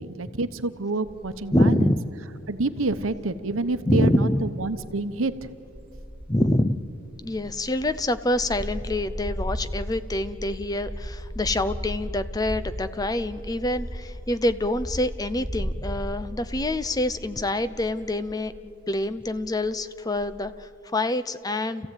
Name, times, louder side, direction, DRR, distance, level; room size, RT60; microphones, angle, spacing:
voice 1, 0.0-1.9 2.5-5.5, right 2 dB, 85° right, 11 dB, 1.0 m, -28 dB
sound 1, 1.0-1.7 2.2-2.3 2.6-18.6 18.9-19.8 20.2-20.5, equal, 5° right, 3.4 m, -36 dB
voice 2, 1.5-2.0 3.9-4.4 6.3-6.8 7.2-18.5 18.9-21.9, left 1 dB, 20° left, 12 dB, 0.6 m, -26 dB
29.0 x 15.0 x 9.1 m, 2.8 s
head